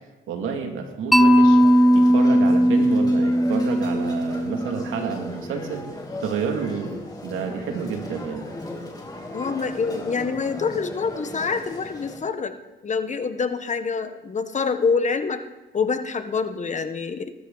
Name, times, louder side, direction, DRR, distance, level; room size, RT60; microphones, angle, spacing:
voice 1, 0.3-1.6 1.9-5.9 6.2-8.4, right 6 dB, 85° right, 3 dB, 2.4 m, -29 dB
Mallet percussion, 1.1-5.1, equal, ahead, 1.0 m, -18 dB
sound 1, 1.4-12.2, left 1 dB, 20° left, 3.1 m, -37 dB
voice 2, 9.3-12.6 12.8-15.4 15.7-17.3, left 5 dB, 35° left, 9 dB, 1.2 m, -26 dB
19.5 x 13.0 x 4.0 m, 1.1 s
cardioid pair, 90°, 20 cm